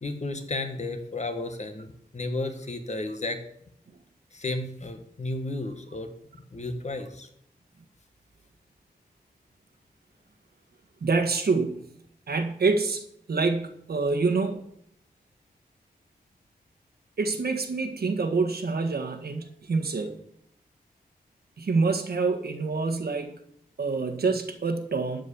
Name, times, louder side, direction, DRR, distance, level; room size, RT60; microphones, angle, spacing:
voice 1, 0.0-3.4 4.3-6.1 6.5-7.3, left 2 dB, 45° left, 6 dB, 1.6 m, -33 dB
voice 2, 11.0-11.9 12.3-14.6 17.2-20.2 21.6-23.3 23.8-25.2, right 4 dB, 80° right, 6 dB, 1.6 m, -26 dB
12.5 x 5.3 x 8.5 m, 0.69 s
wide cardioid pair, 95°, 16 cm